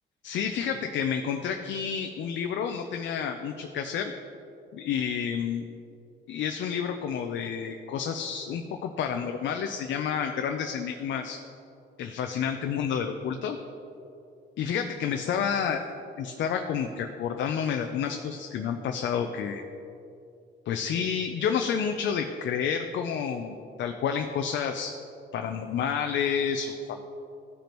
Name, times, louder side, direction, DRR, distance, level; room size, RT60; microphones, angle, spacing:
voice 1, 0.2-4.1 4.7-5.7 6.3-11.4 12.0-13.6 14.6-15.8 16.2-19.6 20.7-24.9 25.3-27.0, left 7 dB, 70° left, 4 dB, 0.5 m, -30 dB
14.0 x 5.2 x 3.0 m, 2.7 s
cardioid pair, 90°, 20 cm